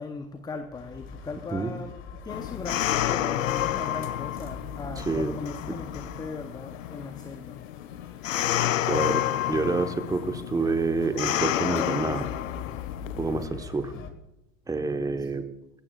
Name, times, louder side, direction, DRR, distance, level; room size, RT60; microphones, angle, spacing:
voice 1, 0.0-7.6 15.2-15.3, left 4 dB, 10° left, 8 dB, 0.8 m, -38 dB
sound 1, 0.7-14.1, left 6 dB, 30° left, 1.5 m, -43 dB
sound 2, 2.3-13.4, left 12 dB, 75° left, 0.6 m, -30 dB
voice 2, 8.9-9.2 9.5-12.3 13.2-13.9 14.7-15.4, right 3 dB, 10° right, 8 dB, 1.1 m, -27 dB
18.0 x 16.0 x 2.4 m, 0.92 s
hypercardioid pair, 100°, 40 cm